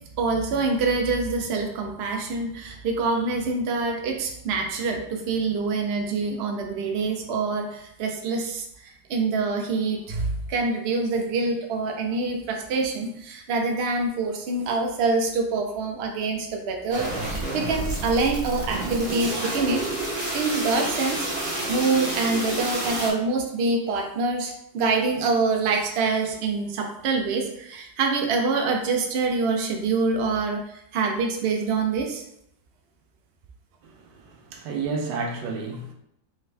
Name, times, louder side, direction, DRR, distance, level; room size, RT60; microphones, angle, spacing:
voice 1, 0.2-19.8 20.3-32.2, right 3 dB, 60° right, 2 dB, 0.6 m, -26 dB
sound 1, 16.9-23.1, right 1 dB, 40° right, 1.0 m, -29 dB
voice 2, 34.5-35.9, right 4 dB, 85° right, 2 dB, 1.3 m, -30 dB
3.6 x 3.5 x 3.3 m, 0.75 s
omnidirectional pair, 1.8 m